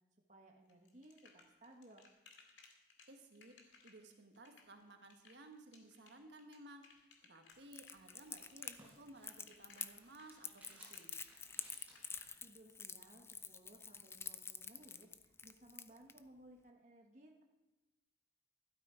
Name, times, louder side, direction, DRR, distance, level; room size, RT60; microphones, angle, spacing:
voice 1, 0.3-2.0 12.2-17.4, right 1 dB, 40° right, 1 dB, 1.3 m, -61 dB
sound 1, 0.7-12.2, left 4 dB, 85° left, 2.2 m, -63 dB
voice 2, 3.1-11.2, right 1 dB, 70° right, 5 dB, 1.5 m, -58 dB
Crackle, 7.7-16.2, left 5 dB, 15° left, 0.3 m, -48 dB
sound 2, 8.0-12.4, right 1 dB, 10° right, 4.4 m, -65 dB
12.5 x 12.0 x 5.1 m, 1.1 s
head